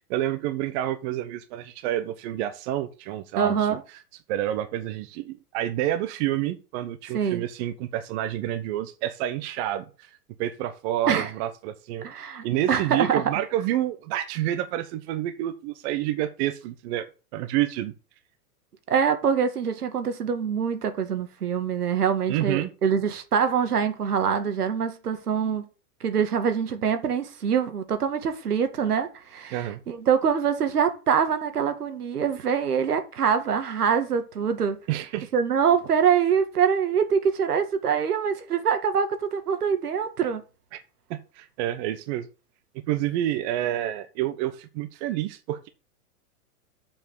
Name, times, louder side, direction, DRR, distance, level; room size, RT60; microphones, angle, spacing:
voice 1, 0.1-3.7 4.3-10.1 10.4-17.1 17.3-17.9 22.3-22.7 29.5-29.8 34.9-35.3 40.7-40.8 41.1-42.3 42.9-45.7, right 13 dB, 45° right, 1.2 m, -28 dB
voice 2, 3.4-3.8 7.1-7.4 11.1-11.3 12.0-13.2 18.9-25.6 26.0-34.8 35.3-40.4, right 7 dB, 85° right, 2.0 m, -24 dB
7.3 x 5.8 x 7.0 m
hypercardioid pair, 115°, 45 cm